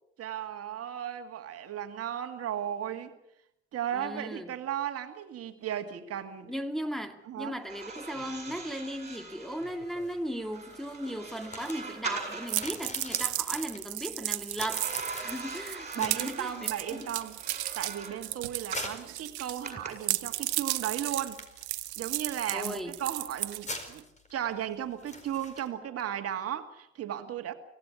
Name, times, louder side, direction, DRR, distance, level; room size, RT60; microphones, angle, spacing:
voice 1, 0.2-3.1 3.7-6.5 7.3-7.6 16.0-21.4 22.0-24.0 24.3-27.5, right 10 dB, 45° right, 2.2 m, -35 dB
voice 2, 3.9-4.5 6.5-17.2 22.5-23.0, equal, ahead, 2.1 m, -37 dB
sound 1, 7.6-12.8 14.7-19.0 19.6-19.9, right 4 dB, 20° right, 7.7 m, -42 dB
sound 2, 7.7-25.7, left 2 dB, 20° left, 4.6 m, -47 dB
sound 3, 12.5-19.7 20.0-24.0, right 17 dB, 75° right, 0.9 m, -34 dB
25.0 x 17.0 x 8.3 m
hypercardioid pair, 65°, 33 cm